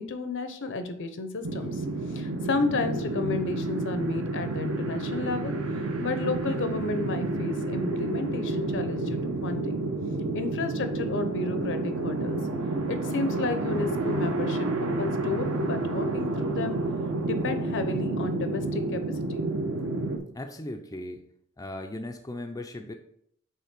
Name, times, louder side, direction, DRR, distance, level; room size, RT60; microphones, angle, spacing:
voice 1, 0.0-5.5 6.0-9.8 10.3-12.4 12.9-16.8 17.2-19.0 19.3-19.5, left 3 dB, 60° left, 9 dB, 0.8 m, -32 dB
sound 1, 1.4-20.2, right 2 dB, 65° right, 0.9 m, -30 dB
voice 2, 20.3-21.2 21.6-22.9, left 1 dB, 15° left, 4 dB, 0.5 m, -37 dB
5.7 x 4.0 x 5.8 m, 0.70 s
head